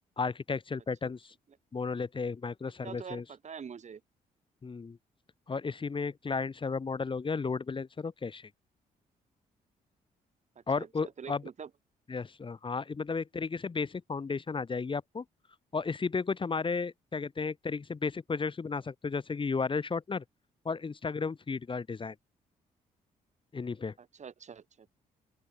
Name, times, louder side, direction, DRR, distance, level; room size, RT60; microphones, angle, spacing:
voice 1, 0.2-1.3 1.7-3.2 4.6-5.0 5.5-8.5 10.7-11.4 12.1-15.2 15.7-20.2 20.6-22.1 23.5-23.9, left 4 dB, 35° left, 1.7 m, -33 dB
voice 2, 2.8-4.0 10.5-10.9 11.2-11.7 24.0-24.9, right 6 dB, 50° right, 3.1 m, -45 dB
open air
cardioid pair, 75°, 16 cm